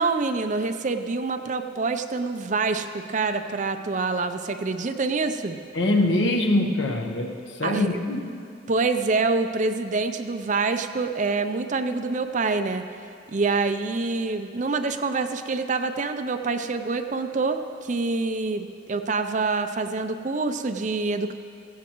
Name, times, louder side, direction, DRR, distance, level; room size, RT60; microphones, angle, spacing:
voice 1, 0.0-5.6 7.6-8.0 8.7-12.8 13.3-21.3, right 3 dB, 40° right, 8 dB, 0.5 m, -26 dB
voice 2, 5.7-8.2, left 1 dB, 65° left, 3 dB, 1.1 m, -23 dB
16.5 x 15.0 x 3.0 m, 2.4 s
head